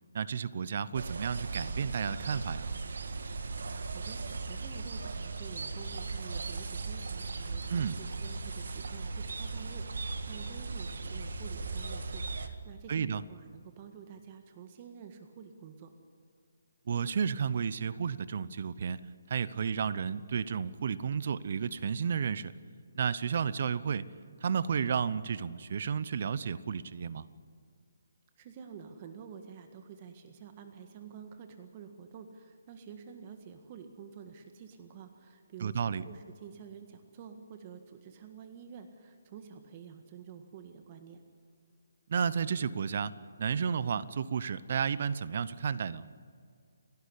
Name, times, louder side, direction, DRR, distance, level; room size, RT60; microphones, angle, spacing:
voice 1, 0.1-2.7 7.7-8.0 12.9-13.2 16.9-19.0 19.3-22.5 23.0-24.1 24.4-27.3 35.6-36.0 42.1-43.1 43.4-46.0, right 6 dB, 50° right, 17 dB, 0.8 m, -32 dB
sound 1, 0.9-12.5, right 3 dB, 70° right, 1.8 m, -38 dB
voice 2, 3.6-15.9 28.4-41.2, right 7 dB, 30° right, 6 dB, 1.6 m, -49 dB
30.0 x 11.5 x 9.9 m, 2.2 s
hypercardioid pair, 155°, 0 cm